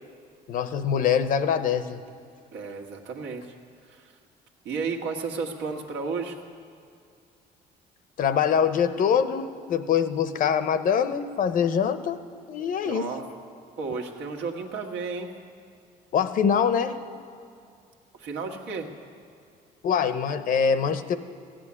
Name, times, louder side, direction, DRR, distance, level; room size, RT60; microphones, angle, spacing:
voice 1, 0.5-2.0 8.2-12.2 12.5-13.1 16.1-17.0 19.8-21.2, left 7 dB, 55° left, 11 dB, 0.8 m, -24 dB
voice 2, 2.5-3.5 3.9-4.1 4.6-6.3 12.8-13.2 13.8-15.3 18.2-18.9, right 4 dB, 85° right, 2 dB, 1.6 m, -32 dB
14.5 x 7.7 x 9.7 m, 2.4 s
cardioid pair, 110°, 17 cm